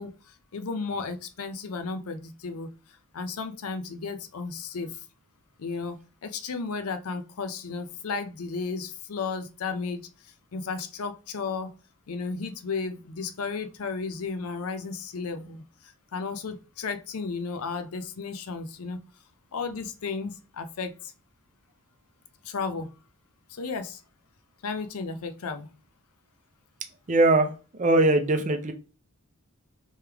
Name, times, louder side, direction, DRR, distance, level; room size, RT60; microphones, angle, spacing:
voice 1, 0.0-2.7 3.1-5.1 5.6-11.7 12.1-19.0 19.5-21.1 22.4-22.9 23.5-24.0 24.6-25.7, left 4 dB, 75° left, 8 dB, 0.5 m, -34 dB
voice 2, 27.1-28.7, right 2 dB, 35° right, 7 dB, 0.5 m, -21 dB
3.4 x 3.1 x 3.4 m, 0.34 s
head